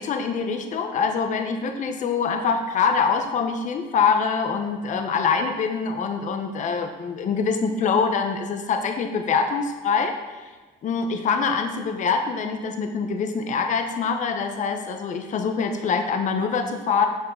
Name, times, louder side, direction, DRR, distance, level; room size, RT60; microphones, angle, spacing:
voice 1, 0.0-10.1 10.8-17.1, left 5 dB, 45° left, 5 dB, 0.8 m, -24 dB
9.8 x 7.0 x 3.7 m, 1.3 s
cardioid pair, 110°, 17 cm